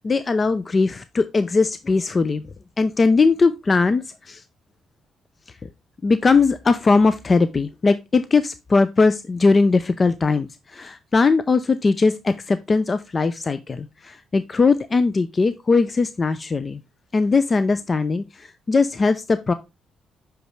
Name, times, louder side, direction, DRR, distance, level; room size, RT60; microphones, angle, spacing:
voice 1, 0.0-2.4 2.8-4.4 6.0-16.8 17.1-19.5, left 4 dB, 35° left, 0.4 m, -20 dB
5.9 x 5.1 x 3.1 m
cardioid pair, 90°, 0 cm